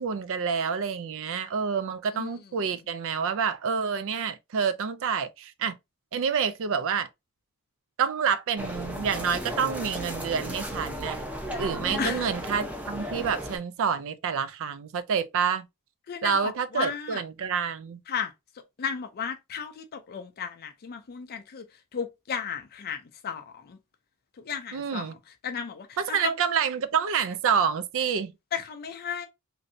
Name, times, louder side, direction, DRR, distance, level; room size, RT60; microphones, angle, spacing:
voice 1, 0.0-5.7 6.1-7.1 8.0-11.2 11.6-15.7 16.2-18.0 24.7-25.1 26.0-28.3, right 6 dB, 65° right, 0.4 m, -28 dB
sound 1, 8.6-13.6, equal, 5° right, 0.6 m, -34 dB
voice 2, 12.0-12.3 16.1-17.2 18.1-18.3 18.8-23.8 24.4-25.2 25.4-26.3 28.5-29.3, left 7 dB, 45° left, 0.4 m, -34 dB
3.1 x 2.6 x 2.6 m
head